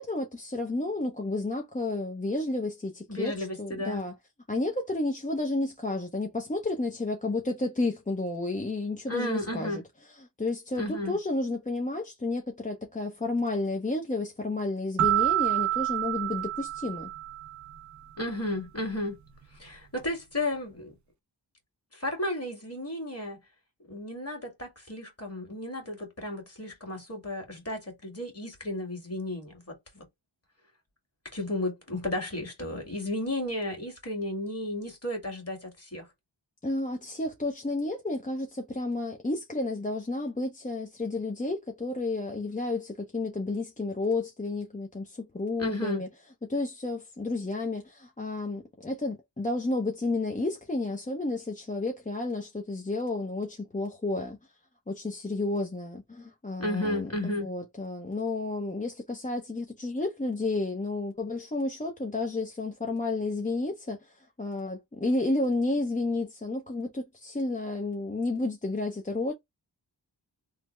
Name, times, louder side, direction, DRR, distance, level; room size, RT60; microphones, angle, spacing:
voice 1, 0.0-4.1 4.5-9.8 10.2-17.1 36.6-46.1 46.5-54.4 54.9-69.3, left 2 dB, 15° left, 0.6 m, -31 dB
voice 2, 3.1-4.1 9.1-9.8 10.8-11.2 18.2-19.2 19.6-20.9 21.9-23.4 23.9-30.1 31.3-36.1 45.6-46.0 56.6-57.5, left 1 dB, 30° left, 1.9 m, -33 dB
sound 1, 15.0-17.7, right 14 dB, 40° right, 0.5 m, -28 dB
3.3 x 2.1 x 3.1 m
cardioid pair, 45°, 44 cm